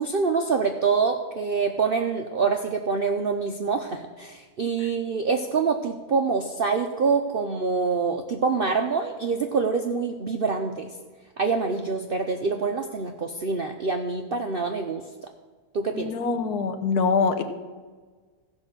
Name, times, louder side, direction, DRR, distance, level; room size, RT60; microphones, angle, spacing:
voice 1, 0.0-10.9 11.4-15.0 15.7-16.1, right 5 dB, 60° right, 4 dB, 0.6 m, -25 dB
voice 2, 15.9-17.4, left 5 dB, 75° left, 7 dB, 1.5 m, -24 dB
15.0 x 5.3 x 6.5 m, 1.4 s
omnidirectional pair, 1.7 m